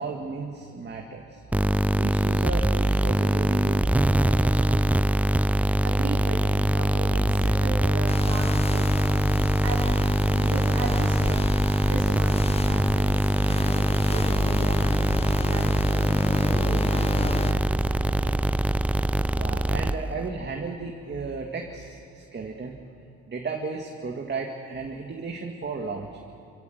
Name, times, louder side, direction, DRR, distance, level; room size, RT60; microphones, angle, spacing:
voice 1, 0.0-1.4 1.9-3.9 4.2-5.0 19.3-22.8 23.3-26.3, right 4 dB, 35° right, 1 dB, 1.9 m, -34 dB
sound 1, 1.5-20.3, right 1 dB, 5° right, 0.5 m, -23 dB
voice 2, 5.6-9.2 9.6-15.1 15.4-18.4, right 3 dB, 55° right, -3 dB, 3.3 m, -37 dB
sound 2, 8.1-17.5, left 3 dB, 20° left, 0.8 m, -32 dB
27.0 x 16.0 x 7.9 m, 2.5 s
cardioid pair, 90°, 30 cm